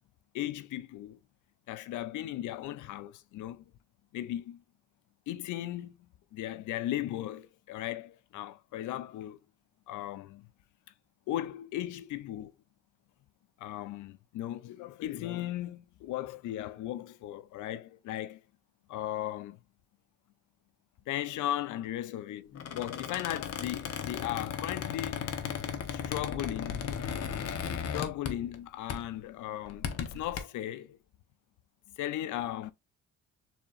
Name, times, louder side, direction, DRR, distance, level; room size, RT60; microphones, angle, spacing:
voice 1, 0.3-1.2 1.7-3.6 4.1-4.6 5.3-6.0 6.3-9.4 9.9-10.5 11.3-12.5 13.6-18.4 18.9-19.6 21.1-25.4 25.9-26.9 27.9-31.0 32.0-32.7, left 13 dB, 80° left, 0.5 m, -37 dB
Squeak, 22.5-28.6 28.9-29.2 29.7-30.4, left 7 dB, 55° left, 0.8 m, -36 dB
7.0 x 2.9 x 2.3 m
cardioid pair, 90°, 30 cm